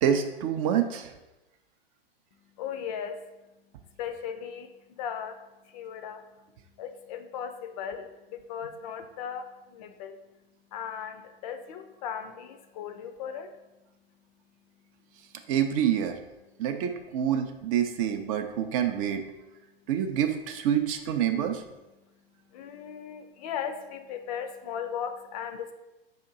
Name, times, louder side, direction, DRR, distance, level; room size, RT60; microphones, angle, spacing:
voice 1, 0.0-1.1 15.5-16.1 16.6-19.2 19.9-21.6, right 9 dB, 35° right, 7 dB, 0.4 m, -27 dB
voice 2, 2.3-3.4 4.0-6.2 6.8-10.2 10.7-13.6 14.8-14.9 15.2-15.5 16.5-16.7 19.5-19.9 22.0-25.7, left 8 dB, 40° left, 8 dB, 0.4 m, -38 dB
5.0 x 2.8 x 3.7 m, 1.0 s
hypercardioid pair, 105°, 30 cm